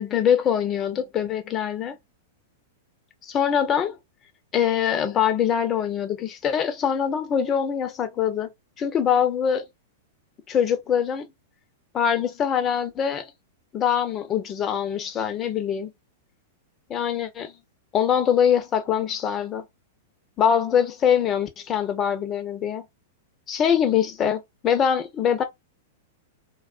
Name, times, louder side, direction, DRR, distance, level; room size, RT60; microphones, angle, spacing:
voice 1, 0.0-2.0 3.2-4.0 4.5-8.5 8.8-9.6 10.5-11.3 11.9-13.3 13.7-15.9 16.9-17.5 17.9-19.6 20.4-22.8 23.5-25.4, left 8 dB, 30° left, 0.6 m, -23 dB
2.3 x 2.3 x 2.4 m
hypercardioid pair, 105°, 0 cm